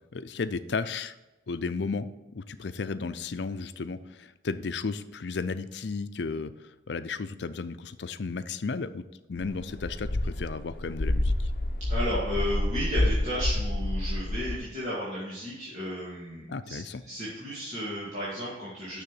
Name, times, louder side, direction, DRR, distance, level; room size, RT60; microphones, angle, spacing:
voice 1, 0.1-1.1 1.5-2.1 2.3-9.0 9.3-11.5 16.5-17.0, left 4 dB, 75° left, 12 dB, 0.5 m, -34 dB
sound 1, 9.4-14.6, left 1 dB, 50° left, 0.8 m, -28 dB
voice 2, 11.9-19.0, equal, 40° right, -9 dB, 2.4 m, -34 dB
6.7 x 6.4 x 7.6 m, 1.1 s
head